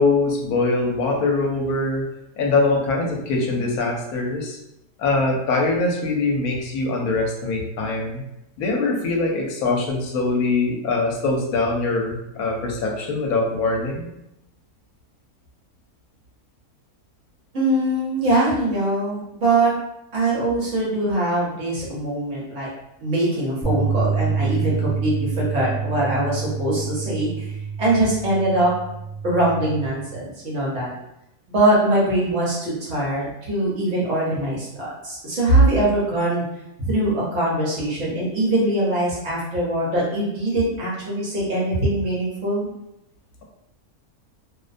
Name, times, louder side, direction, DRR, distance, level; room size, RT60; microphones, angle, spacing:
voice 1, 0.0-2.1 2.4-4.6 5.0-8.2 8.6-14.1, left 3 dB, 75° left, 0 dB, 1.0 m, -22 dB
voice 2, 17.5-19.7 20.1-22.7 23.0-28.7 29.2-30.9 31.5-36.4 36.8-42.7, right 1 dB, 60° right, -6 dB, 1.0 m, -22 dB
sound 1, 23.6-29.9, right 5 dB, 25° right, 0.4 m, -27 dB
2.6 x 2.1 x 2.4 m, 0.85 s
omnidirectional pair, 1.6 m